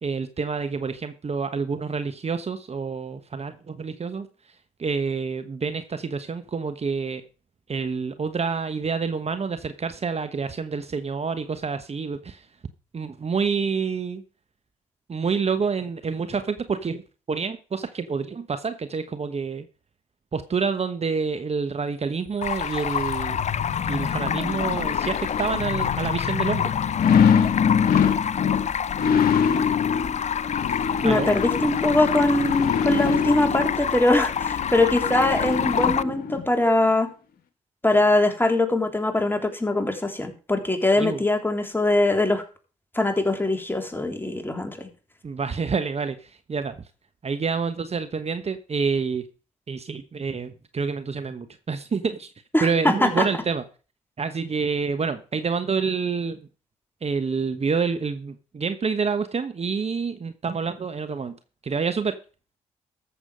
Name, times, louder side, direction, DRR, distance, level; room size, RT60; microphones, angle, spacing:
voice 1, 0.0-4.3 4.8-7.2 7.7-12.5 12.9-14.2 15.1-17.0 17.3-19.7 20.3-23.4 23.9-26.7 31.0-31.4 41.0-41.2 45.2-46.8 47.2-49.2 49.7-52.3 52.6-53.6 54.2-56.5 57.0-61.4 61.6-62.2, right 5 dB, 40° right, 1.2 m, -28 dB
Stream, 22.4-36.0, left 8 dB, 45° left, 0.6 m, -28 dB
sound 1, 22.5-36.4 36.9-37.0, left 7 dB, 70° left, 1.5 m, -25 dB
voice 2, 31.0-37.1 37.8-42.4 42.9-44.9 52.5-53.3, left 2 dB, 15° left, 3.6 m, -22 dB
14.0 x 7.2 x 5.1 m
hypercardioid pair, 45°, 16 cm